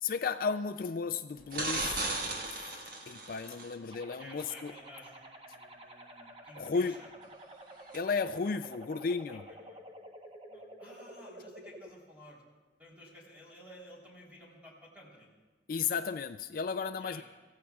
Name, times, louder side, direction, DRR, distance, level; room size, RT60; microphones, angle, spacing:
voice 1, 0.0-2.1 2.5-2.7 3.1-4.7 6.6-6.9 7.9-9.4 15.7-17.2, left 5 dB, 50° left, 10 dB, 0.4 m, -34 dB
sound 1, 1.5-3.7 7.9-8.0, right 2 dB, 50° right, 1.6 m, -35 dB
voice 2, 3.7-7.1 9.3-9.8 10.5-12.4 12.8-15.3 17.0-17.2, equal, 10° right, -5 dB, 3.3 m, -54 dB
sound 2, 3.9-11.9, right 1 dB, 30° right, 1.0 m, -50 dB
27.0 x 15.5 x 2.4 m, 1.3 s
head